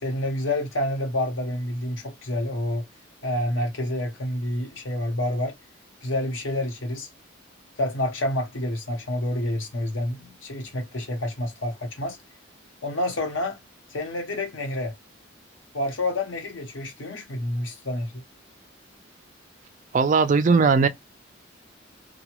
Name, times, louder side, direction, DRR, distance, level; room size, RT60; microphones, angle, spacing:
voice 1, 0.0-2.8 3.2-5.6 6.0-7.1 7.8-12.2 12.8-13.6 13.9-14.9 15.7-18.2, left 1 dB, 75° left, 1.1 m, -28 dB
voice 2, 19.9-20.9, right 4 dB, 40° right, 0.3 m, -18 dB
2.8 x 2.3 x 3.0 m
head